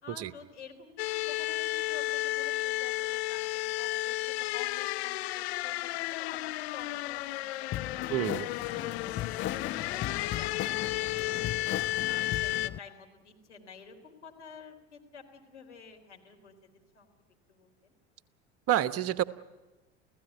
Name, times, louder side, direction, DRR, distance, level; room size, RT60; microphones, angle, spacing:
voice 1, 0.0-8.2 8.6-11.7 12.0-17.1 17.5-17.9, left 6 dB, 80° left, 4 dB, 3.9 m, -50 dB
sound 1, 1.0-12.7, left 18 dB, 65° left, 0.9 m, -33 dB
sound 2, 7.7-12.8, left 13 dB, 35° left, 0.8 m, -37 dB
voice 2, 8.1-8.5 18.7-19.2, right 12 dB, 45° right, 15 dB, 1.2 m, -28 dB
29.5 x 16.5 x 9.2 m, 1.1 s
hypercardioid pair, 75°, 34 cm